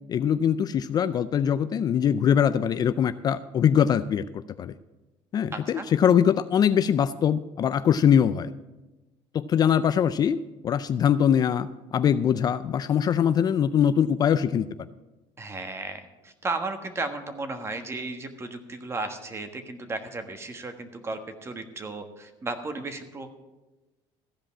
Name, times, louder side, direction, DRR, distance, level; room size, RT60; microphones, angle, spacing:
voice 1, 0.1-4.3 4.6-4.7 5.3-8.5 9.3-10.4 10.6-14.7, left 8 dB, 35° left, 13 dB, 0.4 m, -22 dB
voice 2, 5.5-5.9 15.4-23.4, right 3 dB, 25° right, 8 dB, 1.4 m, -34 dB
14.5 x 5.2 x 8.5 m, 1.1 s
cardioid pair, 115°, 11 cm